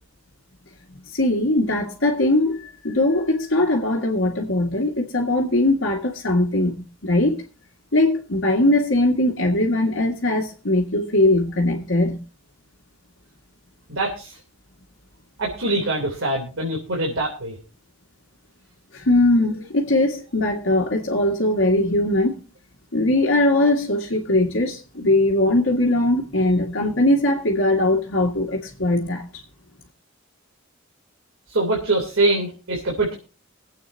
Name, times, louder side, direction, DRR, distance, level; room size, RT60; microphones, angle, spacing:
voice 1, 1.1-7.4 7.9-12.2 18.9-22.4 22.9-29.3, left 1 dB, 70° left, 1.9 m, -20 dB
voice 2, 13.9-14.4 15.4-17.6 31.5-33.1, right 2 dB, 75° right, 3.3 m, -23 dB
24.5 x 8.5 x 2.8 m
head